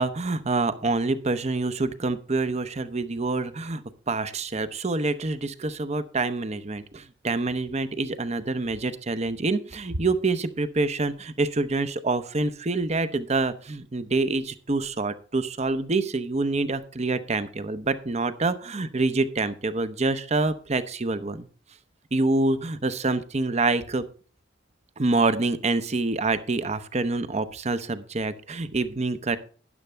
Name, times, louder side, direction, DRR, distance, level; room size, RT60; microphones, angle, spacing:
voice 1, 0.0-21.5 22.1-24.1 25.0-29.4, right 3 dB, 35° right, 12 dB, 0.8 m, -26 dB
12.5 x 10.5 x 3.4 m, 0.41 s
head